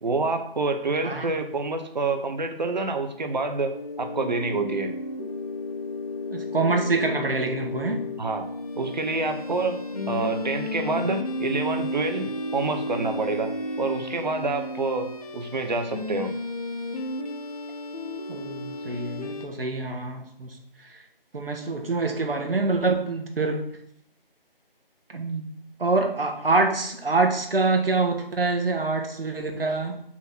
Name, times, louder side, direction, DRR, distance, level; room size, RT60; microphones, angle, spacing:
voice 1, 0.0-4.9 8.2-8.4 8.8-13.5 13.8-16.3, right 3 dB, 45° right, 6 dB, 0.9 m, -27 dB
sound 1, 3.7-19.5, left 1 dB, 40° left, 0.8 m, -33 dB
voice 2, 6.3-8.0 18.3-20.6 21.3-23.6 25.1-25.4 25.8-30.0, right 3 dB, 70° right, 4 dB, 1.5 m, -25 dB
6.1 x 4.0 x 5.9 m, 0.68 s
figure-of-eight pair, 165°, 30 cm